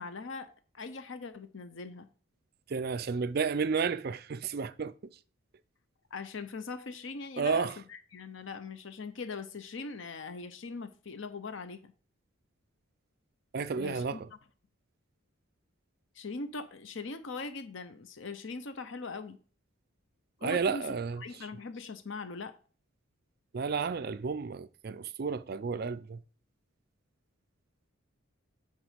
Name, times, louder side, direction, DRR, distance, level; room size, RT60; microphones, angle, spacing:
voice 1, 0.0-2.1 6.1-11.9 13.8-14.2 16.1-19.4 20.4-20.9 21.2-22.5, left 4 dB, 60° left, 0.7 m, -41 dB
voice 2, 2.7-4.9 7.4-7.7 13.5-14.3 20.4-21.5 23.5-26.2, right 5 dB, 45° right, 0.4 m, -32 dB
9.1 x 4.9 x 5.0 m
head